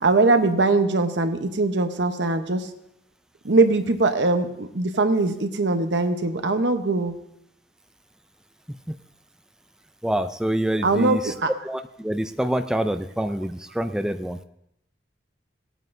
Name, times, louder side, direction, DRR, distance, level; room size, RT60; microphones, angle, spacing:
voice 1, 0.0-2.7 3.4-7.1 10.8-11.5, right 3 dB, 80° right, 7 dB, 0.9 m, -21 dB
voice 2, 10.0-11.3 11.6-14.4, right 1 dB, 5° right, 8 dB, 0.3 m, -26 dB
18.5 x 9.0 x 2.6 m, 0.78 s
head